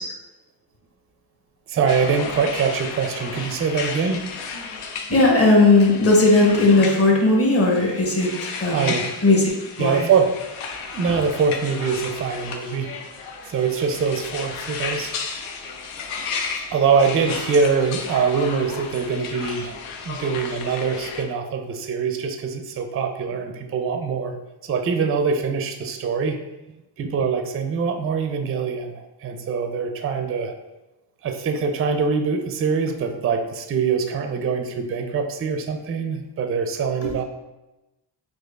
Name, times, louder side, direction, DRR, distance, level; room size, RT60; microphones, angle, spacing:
voice 1, 1.7-4.2 8.7-9.1 9.8-10.3 10.8-12.9 13.5-15.1 16.7-19.7 20.1-24.3 24.6-26.4 27.0-28.9 29.2-30.5 31.2-37.2, right 5 dB, 30° right, 5 dB, 0.4 m, -23 dB
sound 1, 1.9-21.2, left 5 dB, 85° left, 0.6 m, -34 dB
voice 2, 5.1-8.9 9.2-9.5 9.8-10.0 11.1-11.2 37.0-37.1, left 2 dB, 30° left, 0 dB, 0.9 m, -17 dB
4.4 x 2.5 x 2.3 m, 0.99 s
cardioid pair, 65°, 49 cm